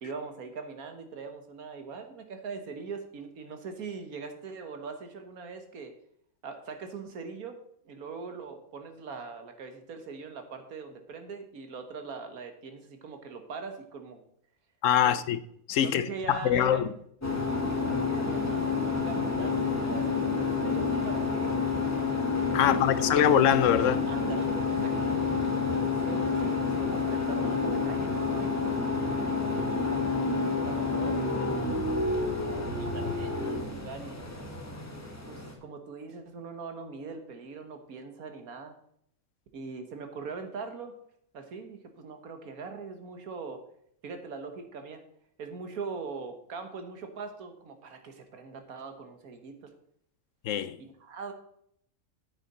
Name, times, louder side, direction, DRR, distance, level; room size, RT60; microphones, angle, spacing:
voice 1, 0.0-5.9 6.4-14.2 15.0-15.1 15.8-16.9 17.9-21.5 22.6-23.1 24.1-24.9 25.7-29.3 29.6-30.2 30.6-31.8 32.7-34.2 35.3-38.8 39.5-41.0 41.3-43.6 44.0-45.0 45.4-49.7 50.8-51.3, right 4 dB, 90° right, 1.7 m, -41 dB
voice 2, 14.8-15.4 15.7-16.8 22.5-24.0 50.4-50.8, left 10 dB, 70° left, 0.9 m, -24 dB
sound 1, 17.2-35.5, left 4 dB, 10° left, 1.3 m, -29 dB
9.3 x 8.3 x 4.2 m
omnidirectional pair, 1.5 m